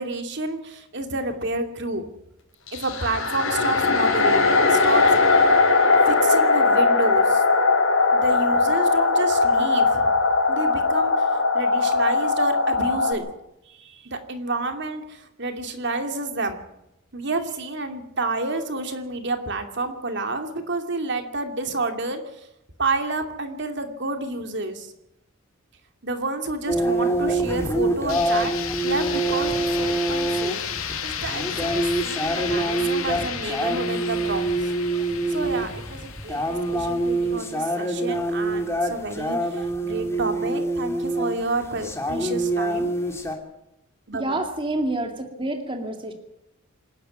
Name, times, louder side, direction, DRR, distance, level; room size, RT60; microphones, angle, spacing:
voice 1, 0.0-2.1 2.7-5.1 6.1-7.4 8.1-10.1 10.5-13.3 13.7-16.6 17.1-22.5 22.8-24.9 26.0-28.5 28.8-30.6 31.0-31.7 32.0-34.5 35.3-43.0 44.1-44.2, right 2 dB, 55° right, 6 dB, 2.6 m, -29 dB
sound 1, 2.7-13.1, left 3 dB, 75° left, 5.9 m, -19 dB
sound 2, 26.7-43.3, right 1 dB, 15° left, 2.9 m, -25 dB
sound 3, 28.1-37.9, left 8 dB, 90° left, 2.7 m, -33 dB
voice 2, 44.1-46.1, right 2 dB, 25° right, 4 dB, 2.2 m, -28 dB
26.5 x 11.0 x 9.3 m, 0.84 s
head